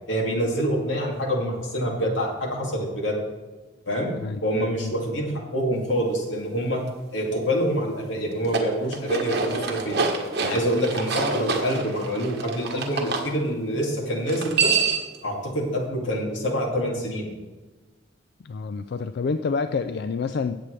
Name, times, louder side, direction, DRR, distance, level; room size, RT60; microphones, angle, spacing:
voice 1, 0.1-3.2 3.9-4.1 4.4-6.8 7.1-10.0 10.4-14.7 15.2-17.3, equal, 85° left, 0 dB, 2.5 m, -26 dB
sound 1, 8.3-13.3 14.3-15.2, right 4 dB, 60° right, 1.4 m, -27 dB
voice 2, 18.4-20.6, left 4 dB, 60° left, 10 dB, 0.4 m, -28 dB
17.0 x 7.7 x 3.3 m, 1.2 s
head